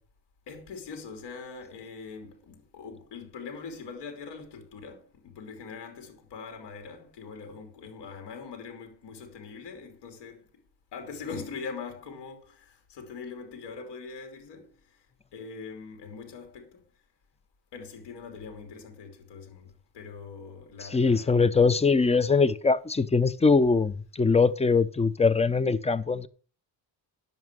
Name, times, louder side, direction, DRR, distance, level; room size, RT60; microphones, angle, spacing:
voice 1, 0.5-10.5 10.9-15.0 15.3-16.8 17.7-21.5, left 5 dB, 75° left, 3.1 m, -42 dB
voice 2, 20.9-26.3, left 4 dB, 15° left, 0.6 m, -22 dB
11.0 x 7.2 x 6.1 m
cardioid pair, 110°, 42 cm